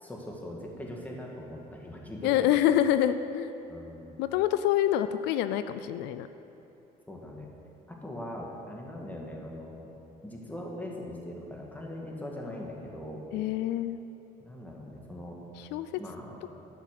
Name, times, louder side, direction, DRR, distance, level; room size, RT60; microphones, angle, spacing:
voice 1, 0.0-2.5 3.7-4.2 7.1-7.5 7.9-9.9 10.2-13.2 14.4-15.4 16.0-16.4, left 1 dB, 10° left, -1 dB, 1.7 m, -41 dB
voice 2, 2.2-3.5 4.2-6.3 13.3-14.0 15.6-15.9, left 11 dB, 90° left, 12 dB, 0.4 m, -26 dB
12.0 x 5.8 x 6.5 m, 2.9 s
cardioid pair, 110°, 17 cm